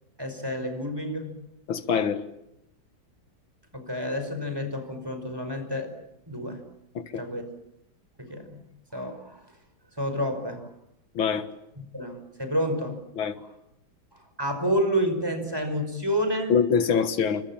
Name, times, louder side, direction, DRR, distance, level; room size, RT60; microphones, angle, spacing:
voice 1, 0.2-1.4 3.7-5.9 6.3-6.6 7.1-7.4 8.2-8.6 8.9-9.4 10.0-10.7 11.9-13.0 14.4-16.5, equal, 10° right, 5.1 m, -29 dB
voice 2, 1.7-2.2 7.0-7.2 11.2-11.5 13.2-13.3 16.5-17.4, left 6 dB, 90° left, 2.3 m, -24 dB
30.0 x 25.5 x 7.4 m
omnidirectional pair, 2.1 m